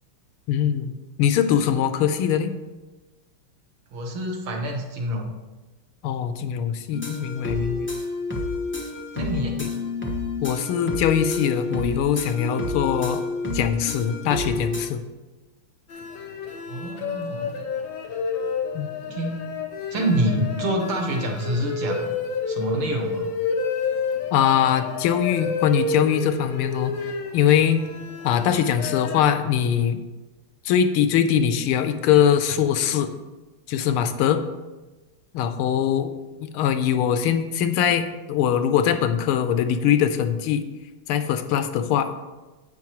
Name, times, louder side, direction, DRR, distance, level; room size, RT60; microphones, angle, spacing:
voice 1, 0.5-0.9 1.2-2.5 6.0-7.9 9.3-9.7 10.4-13.2 13.5-15.0 18.7-18.9 24.3-26.9 27.3-27.8 28.2-30.0 30.6-33.1 33.7-34.4 35.3-36.1 36.4-40.6 41.1-42.1, left 9 dB, 90° left, 9 dB, 1.5 m, -22 dB
voice 2, 3.9-5.3 9.1-9.6 16.7-17.7 19.1-19.5 19.9-22.1 22.5-23.3, right 1 dB, 75° right, 1 dB, 2.2 m, -27 dB
sound 1, 6.9-14.9, left 3 dB, 15° left, 0.4 m, -29 dB
sound 2, 15.9-29.2, left 4 dB, 65° left, 1.6 m, -30 dB
10.5 x 7.7 x 3.0 m, 1.2 s
omnidirectional pair, 2.4 m